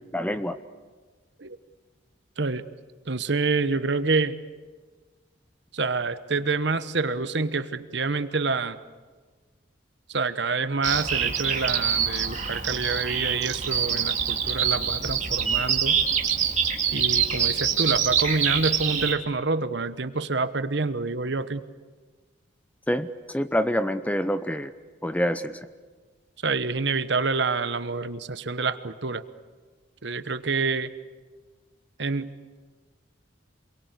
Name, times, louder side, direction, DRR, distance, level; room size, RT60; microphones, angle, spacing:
voice 1, 0.1-0.6 22.9-24.7 25.0-25.6, equal, 5° left, 11 dB, 0.8 m, -26 dB
voice 2, 3.1-4.4 5.7-8.8 10.1-16.0 16.9-21.6 26.4-29.2 30.0-30.9 32.0-32.3, right 4 dB, 60° right, 12 dB, 1.1 m, -27 dB
Bird vocalization bird call bird song, 10.8-19.1, right 7 dB, 35° right, 2.6 m, -25 dB
28.0 x 22.5 x 8.2 m, 1.4 s
head